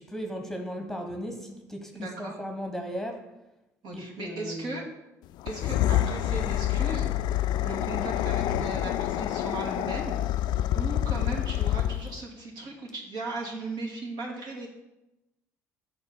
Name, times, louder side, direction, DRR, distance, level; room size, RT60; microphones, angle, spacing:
voice 1, 0.0-3.3 3.9-4.9, equal, 5° left, 4 dB, 1.2 m, -36 dB
voice 2, 1.9-2.3 3.8-4.8 5.5-7.1 7.6-10.2 10.7-14.7, right 2 dB, 60° right, -2 dB, 2.2 m, -37 dB
sound 1, 5.4-12.2, left 12 dB, 60° left, 0.4 m, -27 dB
7.1 x 4.3 x 6.8 m, 0.96 s
hypercardioid pair, 60°, 8 cm